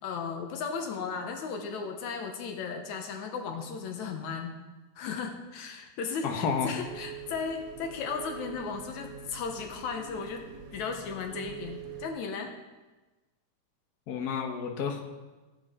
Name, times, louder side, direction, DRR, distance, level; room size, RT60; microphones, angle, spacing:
voice 1, 0.0-4.5 5.0-10.4 10.7-12.5, left 5 dB, 80° left, 4 dB, 2.4 m, -35 dB
voice 2, 6.2-6.7 14.1-15.0, left 6 dB, 65° left, 3 dB, 0.9 m, -30 dB
sound 1, 6.8-12.1, right 8 dB, 85° right, 0.7 m, -45 dB
15.0 x 8.6 x 4.5 m, 1.2 s
omnidirectional pair, 3.3 m